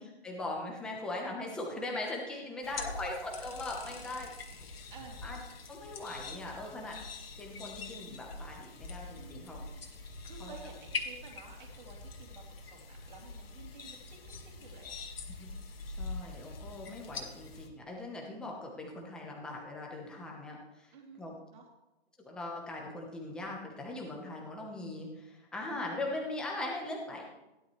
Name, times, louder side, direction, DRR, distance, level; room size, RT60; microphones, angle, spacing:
voice 1, 0.0-4.3 5.2-5.4 5.7-7.0 7.4-9.6 10.4-10.5 15.4-15.5 15.8-20.9 21.2-21.3 22.2-27.2, left 2 dB, 5° left, -1 dB, 1.0 m, -40 dB
sound 1, 2.6-17.7, left 3 dB, 65° left, 2.0 m, -44 dB
voice 2, 4.9-5.2 9.1-14.0 14.6-14.9 20.9-21.2 21.5-21.6, right 4 dB, 45° right, -1 dB, 2.9 m, -52 dB
16.0 x 11.5 x 3.2 m, 0.98 s
hypercardioid pair, 170°, 32 cm